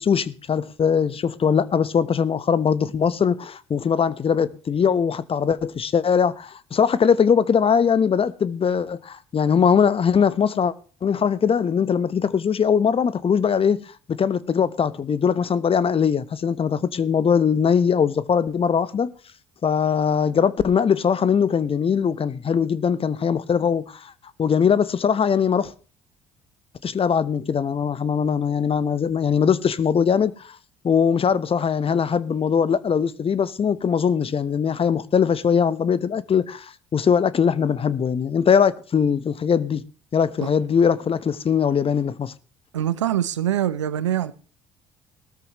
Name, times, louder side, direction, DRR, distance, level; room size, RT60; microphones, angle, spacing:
voice 1, 0.0-10.7 11.0-13.8 14.1-19.1 19.6-24.1 24.4-25.7 26.8-30.6 30.8-39.8 40.1-42.3, left 7 dB, 40° left, 1.1 m, -21 dB
voice 2, 42.7-44.3, right 11 dB, 90° right, 0.7 m, -24 dB
19.0 x 13.0 x 3.1 m
hypercardioid pair, 50°, 15 cm